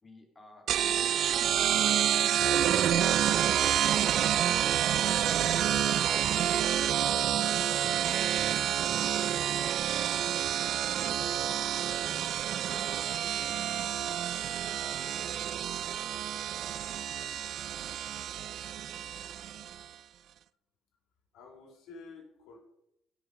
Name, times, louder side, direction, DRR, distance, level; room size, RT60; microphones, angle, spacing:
voice 1, 0.0-4.5 5.0-8.0 9.0-11.4 12.0-14.2 14.6-17.0, left 2 dB, 20° left, 1 dB, 3.0 m, -57 dB
sound 1, 0.7-19.8, right 10 dB, 60° right, 0.3 m, -28 dB
voice 2, 21.3-22.6, left 4 dB, 80° left, 1 dB, 3.3 m, -50 dB
16.0 x 6.1 x 4.8 m, 0.82 s
cardioid pair, 130°, 0 cm